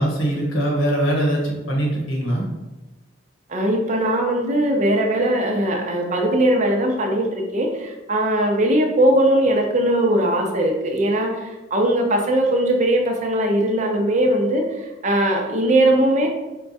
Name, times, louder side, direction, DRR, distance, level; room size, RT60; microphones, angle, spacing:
voice 1, 0.0-2.5, right 1 dB, 85° left, -1 dB, 1.2 m, -22 dB
voice 2, 3.5-16.3, right 1 dB, 35° right, 1 dB, 0.6 m, -20 dB
4.5 x 2.3 x 4.0 m, 1.1 s
head